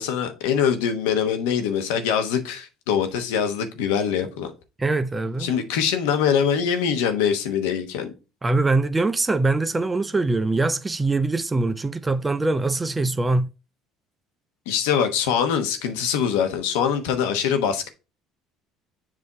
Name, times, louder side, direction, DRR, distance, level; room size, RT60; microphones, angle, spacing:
voice 1, 0.0-4.5 5.4-8.1 14.7-17.9, left 7 dB, 85° left, 1.0 m, -23 dB
voice 2, 4.8-5.5 8.4-13.5, right 2 dB, 20° right, 0.4 m, -23 dB
7.6 x 2.7 x 4.7 m
supercardioid pair, 90°, 0 cm